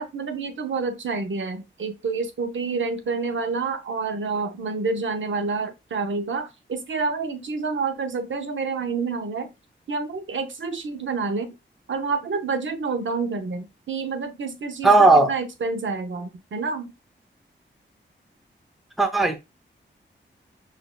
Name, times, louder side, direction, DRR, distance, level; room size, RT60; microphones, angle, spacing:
voice 1, 0.0-9.5 9.9-11.5 11.9-16.9, right 4 dB, 75° right, 0.7 m, -28 dB
voice 2, 14.8-15.3 19.0-19.4, right 3 dB, ahead, 0.6 m, -16 dB
6.0 x 2.6 x 2.2 m
wide cardioid pair, 105°, 20 cm